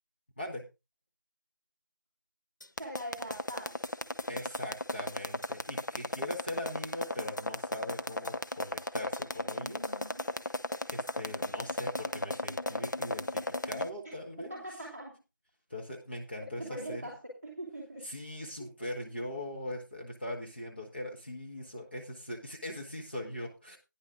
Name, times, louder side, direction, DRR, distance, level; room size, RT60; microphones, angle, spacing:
sound 1, 2.6-13.9, left 1 dB, 65° left, 0.8 m, -35 dB
voice 1, 2.8-3.8 9.4-10.3 14.4-15.2 16.6-18.1 18.6-18.7, right 1 dB, 5° left, -9 dB, 1.5 m, -42 dB
voice 2, 4.3-9.8 10.9-14.6 15.7-17.1 18.0-23.8, left 1 dB, 30° left, -1 dB, 1.4 m, -41 dB
16.0 x 10.0 x 2.5 m, 0.25 s
figure-of-eight pair, 175°, 11 cm